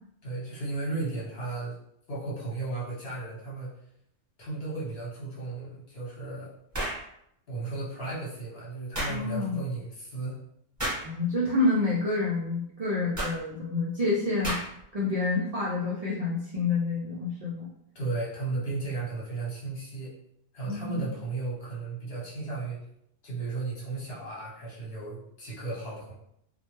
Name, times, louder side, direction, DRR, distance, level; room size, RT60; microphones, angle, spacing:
voice 1, 0.2-1.7 2.1-3.7 4.4-6.5 7.5-10.4 17.9-20.1 20.5-22.8 23.2-26.1, right 3 dB, 65° left, -6 dB, 1.1 m, -34 dB
sound 1, 6.7-7.0 8.9-9.2 10.8-11.1 13.1-13.4 14.4-14.8, right 1 dB, 15° right, 1.0 m, -31 dB
voice 2, 9.1-9.6 11.0-14.6 14.9-17.7 20.7-21.1, left 3 dB, 60° right, -5 dB, 0.4 m, -28 dB
2.2 x 2.1 x 3.0 m, 0.74 s
omnidirectional pair, 1.1 m